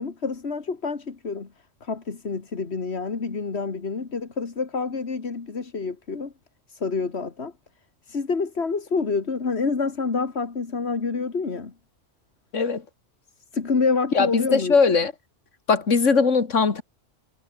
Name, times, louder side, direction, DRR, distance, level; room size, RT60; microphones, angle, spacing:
voice 1, 0.0-1.5 1.8-6.3 6.7-7.5 8.1-11.7 13.5-14.8, left 4 dB, 60° left, 2.2 m, -27 dB
voice 2, 14.1-15.1 15.7-16.8, left 5 dB, 80° left, 2.4 m, -20 dB
omnidirectional pair, 1.2 m